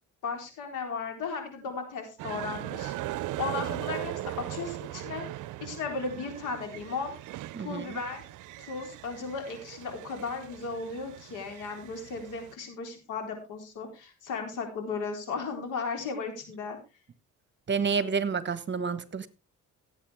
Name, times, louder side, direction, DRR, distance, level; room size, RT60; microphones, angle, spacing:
voice 1, 0.2-2.9 3.4-5.3 5.6-7.1 7.6-8.3 8.6-16.8, left 4 dB, 85° left, 4.1 m, -35 dB
sound 1, 2.2-12.5, right 15 dB, 80° right, 0.6 m, -39 dB
voice 2, 7.5-8.0 17.7-19.3, right 5 dB, 40° right, 1.2 m, -29 dB
16.0 x 8.1 x 3.5 m
cardioid pair, 90°, 30 cm